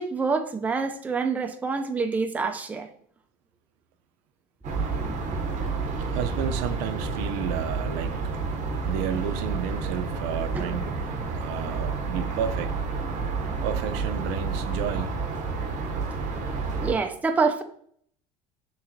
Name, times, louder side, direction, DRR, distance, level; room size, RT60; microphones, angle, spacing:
voice 1, 0.0-2.9 10.5-10.7 16.8-17.6, right 4 dB, 10° right, 0.3 m, -26 dB
sound 1, 4.6-16.9, right 4 dB, 40° right, 0.7 m, -30 dB
voice 2, 6.1-8.5 8.9-10.9 11.3-12.7 13.6-15.1, right 8 dB, 80° right, 0.4 m, -32 dB
5.7 x 3.0 x 2.6 m
cardioid pair, 120°, 18 cm